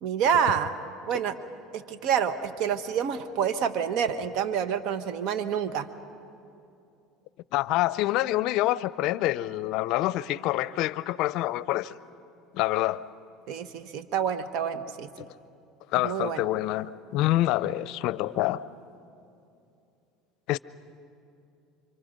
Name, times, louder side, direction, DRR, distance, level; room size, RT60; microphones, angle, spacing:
voice 1, 0.0-0.7 1.1-1.3 1.7-5.9 13.5-15.1 16.0-16.4, right 8 dB, 65° right, 10 dB, 1.2 m, -27 dB
voice 2, 7.5-11.9 12.5-13.0 15.9-18.6 20.5-20.6, left 16 dB, 65° left, 17 dB, 0.5 m, -26 dB
28.0 x 25.0 x 5.3 m, 2.6 s
supercardioid pair, 100°, 0 cm